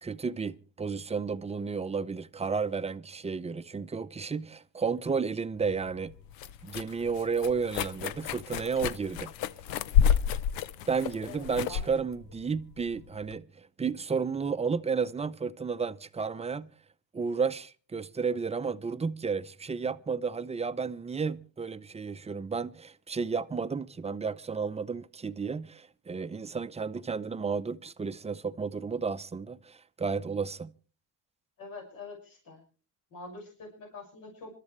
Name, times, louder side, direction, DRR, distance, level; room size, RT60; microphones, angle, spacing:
voice 1, 0.0-6.1 6.6-9.3 10.9-16.7 17.1-30.7, right 5 dB, 20° right, 0.6 m, -32 dB
sound 1, 5.6-13.4, left 8 dB, 90° left, 0.7 m, -30 dB
voice 2, 11.3-11.9 31.6-32.6 33.1-34.5, left 3 dB, 70° left, 6.1 m, -45 dB
26.0 x 12.5 x 3.2 m
cardioid pair, 105°, 35 cm